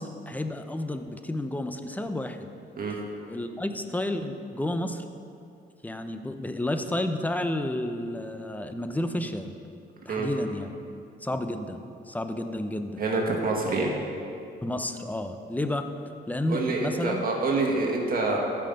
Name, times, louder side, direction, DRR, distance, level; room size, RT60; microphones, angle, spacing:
voice 1, 0.0-2.5 3.3-5.0 5.8-9.5 10.1-10.7 11.2-13.0 14.6-15.9 16.3-17.2, left 1 dB, 10° left, 7 dB, 0.7 m, -31 dB
voice 2, 13.0-13.9 16.5-18.4, right 3 dB, 45° right, -1 dB, 2.1 m, -26 dB
14.5 x 5.7 x 5.4 m, 2.6 s
cardioid pair, 90°, 20 cm